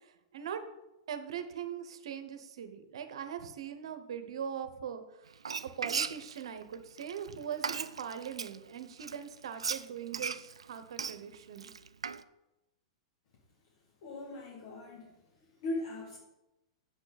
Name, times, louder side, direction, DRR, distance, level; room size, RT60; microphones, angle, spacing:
voice 1, 1.1-5.3 5.6-11.7, right 8 dB, 70° right, 9 dB, 0.9 m, -41 dB
Frying (food), 5.3-8.6 9.0-12.2, right 6 dB, 90° right, 0.4 m, -37 dB
voice 2, 14.0-15.1 15.4-16.2, left 2 dB, 60° left, -2 dB, 1.8 m, -39 dB
8.2 x 7.4 x 4.1 m, 0.95 s
hypercardioid pair, 110°, 3 cm